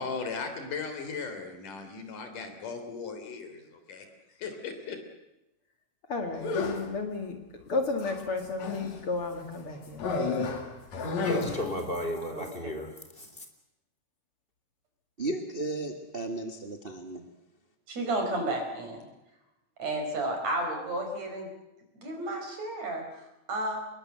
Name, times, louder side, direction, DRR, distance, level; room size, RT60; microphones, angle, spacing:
voice 1, 0.0-4.1 4.4-5.0, left 5 dB, 75° left, 7 dB, 4.8 m, -37 dB
voice 2, 6.1-7.4 7.7-10.4, left 3 dB, 45° left, 5 dB, 2.9 m, -33 dB
sound 1, 6.4-7.0 8.0-9.0 10.0-11.8, left 3 dB, 60° left, 3.8 m, -31 dB
voice 3, 11.2-13.5, left 1 dB, 15° left, 5 dB, 3.4 m, -35 dB
voice 4, 15.2-17.2, right 2 dB, 25° right, 6 dB, 1.3 m, -34 dB
voice 5, 17.9-19.0 19.8-21.5 22.0-23.8, right 1 dB, 55° right, 3 dB, 6.1 m, -32 dB
25.5 x 21.5 x 7.9 m, 0.93 s
omnidirectional pair, 3.7 m